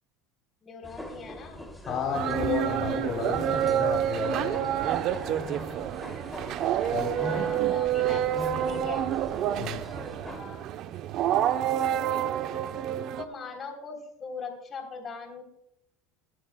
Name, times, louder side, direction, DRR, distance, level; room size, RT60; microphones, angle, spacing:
voice 1, 0.6-1.8 6.8-9.1 10.2-10.6 12.1-12.9 13.2-15.4, left 4 dB, 35° left, 2 dB, 3.5 m, -41 dB
sound 1, 0.8-10.4, equal, 5° left, 2.6 m, -41 dB
voice 2, 1.9-4.6 6.9-7.1 9.6-9.8, left 7 dB, 50° left, 0 dB, 2.9 m, -32 dB
sound 2, 2.1-13.2, right 11 dB, 55° right, 0.8 m, -28 dB
21.5 x 11.5 x 2.3 m, 0.80 s
supercardioid pair, 100°, 0 cm